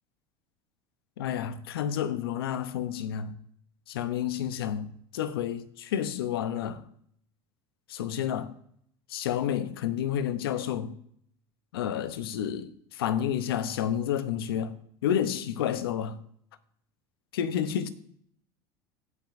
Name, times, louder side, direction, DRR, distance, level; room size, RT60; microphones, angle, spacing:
voice 1, 1.2-3.3 3.9-6.8 7.9-8.5 9.1-11.0 11.7-14.8 15.0-16.2 17.3-17.9, left 9 dB, 90° left, 0.7 m, -30 dB
17.5 x 6.0 x 2.6 m
supercardioid pair, 95°, 12 cm